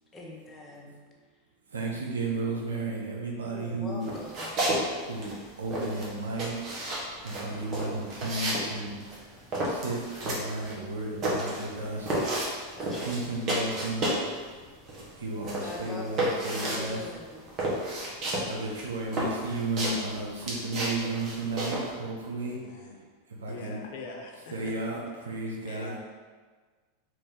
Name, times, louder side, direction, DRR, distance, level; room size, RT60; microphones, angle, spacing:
voice 1, 0.1-0.9 3.4-4.5 12.7-13.3 15.6-17.4, left 2 dB, 20° left, -2 dB, 0.8 m, -42 dB
voice 2, 1.7-4.1 5.0-12.2 13.0-14.2 15.2-17.1 17.7-17.9 18.4-22.6 23.3-23.9 24.5-26.0, right 2 dB, 90° right, -2 dB, 0.7 m, -34 dB
sound 1, 4.0-4.8 5.1-14.3 14.6-21.9, right 1 dB, 40° right, 1.0 m, -31 dB
voice 3, 22.4-22.9 23.5-24.7 25.6-26.0, left 4 dB, 65° left, 1 dB, 0.5 m, -43 dB
2.9 x 2.6 x 3.7 m, 1.5 s
hypercardioid pair, 100°, 0 cm